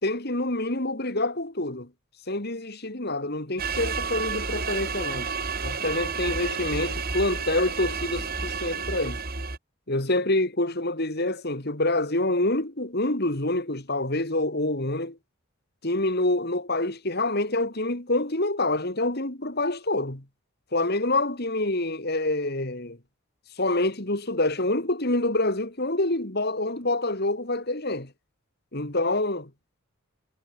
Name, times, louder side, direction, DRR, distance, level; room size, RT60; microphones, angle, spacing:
voice 1, 0.0-1.9 2.3-5.3 5.6-9.2 9.9-15.2 15.8-20.2 20.7-23.0 23.6-28.1 28.7-29.5, left 2 dB, 45° left, 2.7 m, -26 dB
sound 1, 3.6-9.6, right 5 dB, 45° right, 2.6 m, -31 dB
head